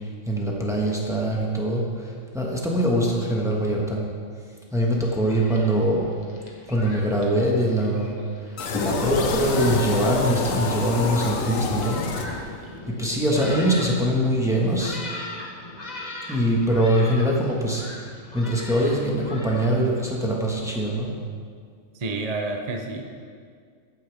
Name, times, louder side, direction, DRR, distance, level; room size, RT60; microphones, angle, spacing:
voice 1, 0.2-4.0 4.7-6.1 6.7-8.1 8.7-12.0 12.9-15.0 16.3-17.8 18.3-21.1, right 1 dB, ahead, -3 dB, 1.5 m, -23 dB
Thunderstorm, 4.9-19.7, left 2 dB, 35° left, 1.3 m, -40 dB
sound 1, 8.6-12.8, left 4 dB, 75° left, 1.3 m, -27 dB
voice 2, 22.0-23.1, right 2 dB, 35° right, 3 dB, 0.7 m, -29 dB
14.0 x 9.2 x 3.6 m, 2.1 s
omnidirectional pair, 1.4 m